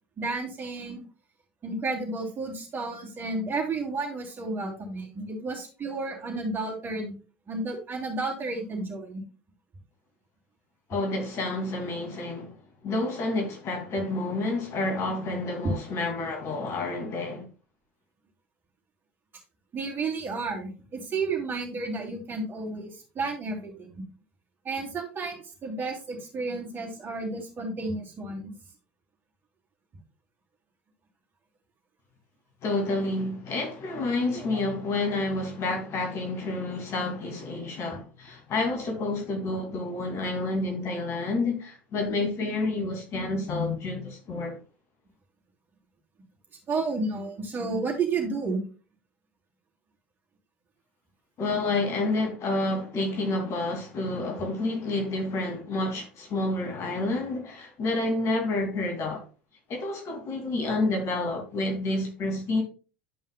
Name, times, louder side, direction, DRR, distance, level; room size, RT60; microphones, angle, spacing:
voice 1, 0.2-1.1 1.6-7.2 7.5-9.2 19.7-24.0 24.6-28.5 34.3-34.6 46.7-48.6, right 3 dB, 35° right, 3.0 m, -32 dB
voice 2, 10.9-12.6 12.8-17.4 32.6-44.6 51.4-59.2 59.7-62.6, left 2 dB, 45° left, 2.4 m, -29 dB
11.5 x 5.5 x 2.2 m
hypercardioid pair, 75°, 6 cm